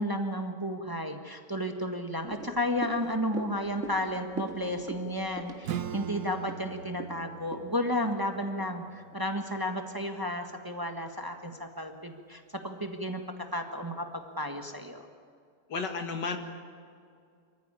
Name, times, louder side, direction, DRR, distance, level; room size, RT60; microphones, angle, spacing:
voice 1, 0.0-15.1, left 1 dB, 15° right, 5 dB, 1.4 m, -33 dB
sound 1, 2.3-8.8 9.1-9.2, right 4 dB, 45° right, 2.0 m, -43 dB
Acoustic guitar / Strum, 5.6-10.9, right 9 dB, 70° right, 1.5 m, -41 dB
voice 2, 15.7-16.4, left 4 dB, 90° left, 6 dB, 2.5 m, -32 dB
25.0 x 14.5 x 9.9 m, 2.3 s
omnidirectional pair, 1.8 m